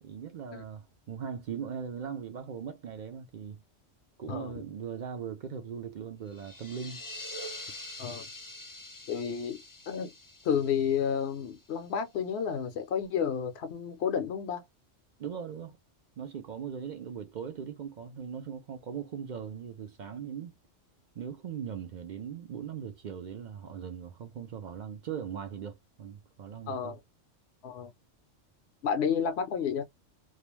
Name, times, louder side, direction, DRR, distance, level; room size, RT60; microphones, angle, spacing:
voice 1, 0.0-3.6 4.2-7.1 15.2-15.8 16.2-20.5 21.2-27.0, right 7 dB, 65° right, 0.4 m, -39 dB
voice 2, 4.3-4.6 8.0-8.3 9.1-10.1 10.4-14.6 26.7-27.0 27.6-27.9 28.8-29.8, left 7 dB, 65° left, 0.8 m, -31 dB
sound 1, 6.3-11.9, left 1 dB, 35° left, 0.3 m, -45 dB
2.3 x 2.1 x 3.0 m
omnidirectional pair, 1.3 m